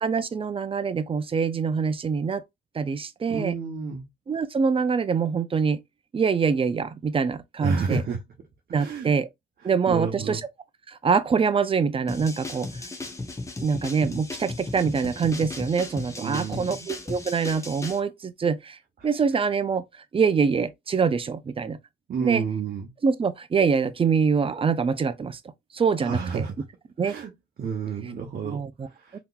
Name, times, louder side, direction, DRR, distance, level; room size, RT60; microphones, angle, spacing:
voice 1, 0.0-2.4 2.7-3.5 4.3-5.8 6.1-8.0 8.7-9.3 9.6-10.5 10.9-12.9 13.6-21.8 22.2-22.4 23.0-25.4 25.7-26.5 27.0-27.2 28.4-28.9 29.1-29.2, right 5 dB, 30° right, 0.4 m, -25 dB
voice 2, 3.3-4.1 7.6-8.2 8.8-9.1 9.6-10.4 16.2-16.9 22.1-22.9 26.0-26.5 27.0-27.3 27.6-29.2, right 5 dB, 50° right, 0.8 m, -30 dB
sound 1, 12.1-18.0, left 2 dB, 15° left, 0.8 m, -36 dB
3.6 x 2.9 x 2.3 m
cardioid pair, 90°, 20 cm